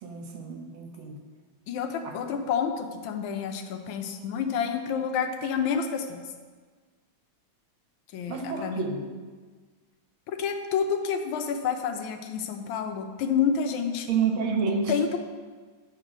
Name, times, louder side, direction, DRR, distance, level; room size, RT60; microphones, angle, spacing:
voice 1, 0.0-1.2 2.0-2.2 8.3-9.0 14.1-14.9, right 5 dB, 75° right, 4 dB, 1.7 m, -29 dB
voice 2, 1.7-6.3 8.1-8.9 10.3-14.1 14.9-15.2, left 7 dB, 80° left, 5 dB, 1.4 m, -29 dB
8.1 x 3.7 x 6.0 m, 1.5 s
omnidirectional pair, 2.3 m